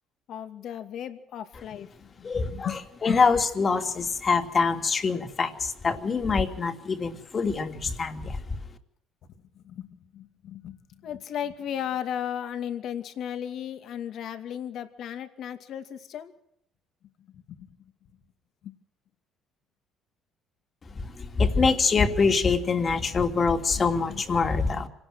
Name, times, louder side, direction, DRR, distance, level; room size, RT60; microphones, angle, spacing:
voice 1, 0.3-2.8 3.1-3.2 9.5-16.3 17.2-17.9 18.6-18.7 24.1-24.2 24.6-24.7, left 9 dB, 65° left, 9 dB, 2.4 m, -36 dB
voice 2, 2.2-2.7 3.0-8.4 21.2-24.9, left 4 dB, 35° left, 7 dB, 2.9 m, -24 dB
26.0 x 18.5 x 6.3 m, 0.75 s
cardioid pair, 90°, 0 cm